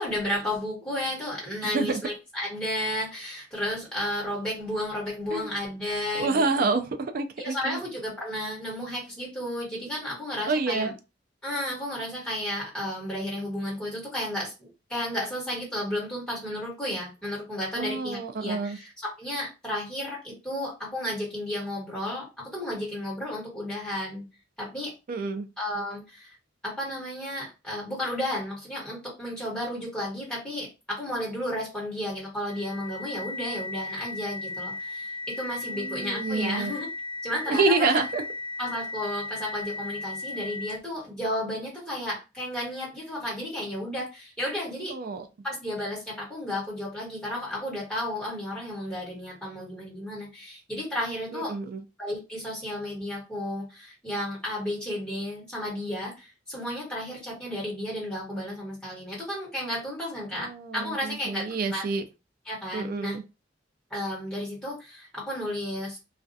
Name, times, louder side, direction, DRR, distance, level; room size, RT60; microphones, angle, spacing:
voice 1, 0.0-6.7 7.4-10.9 11.4-18.9 19.2-24.2 24.6-24.9 25.6-26.4 26.6-36.9 37.2-38.0 38.6-45.0 45.4-51.5 52.0-61.9 62.4-63.2 63.9-66.0, left 1 dB, 5° left, 1.2 m, -33 dB
voice 2, 1.6-2.0 5.3-5.5 6.1-7.8 10.5-10.9 17.8-18.8 25.1-25.5 35.7-36.7 37.5-38.2 44.9-45.2 51.3-51.8 60.3-62.0 62.7-63.2, right 3 dB, 50° right, 0.4 m, -28 dB
sound 1, 32.5-41.0, left 3 dB, 30° left, 0.6 m, -36 dB
2.4 x 2.2 x 2.6 m
head